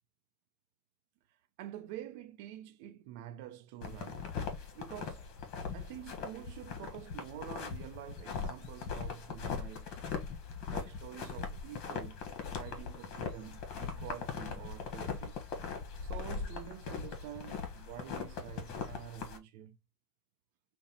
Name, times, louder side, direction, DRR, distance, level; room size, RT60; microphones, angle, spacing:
voice 1, 1.6-4.3 4.7-5.3 5.7-9.9 10.7-12.2 12.6-15.4 16.0-19.8, right 11 dB, 70° right, 0.7 m, -47 dB
sound 1, 3.8-19.4, left 5 dB, 60° left, 1.2 m, -40 dB
5.1 x 2.3 x 2.9 m
supercardioid pair, 100°, 0 cm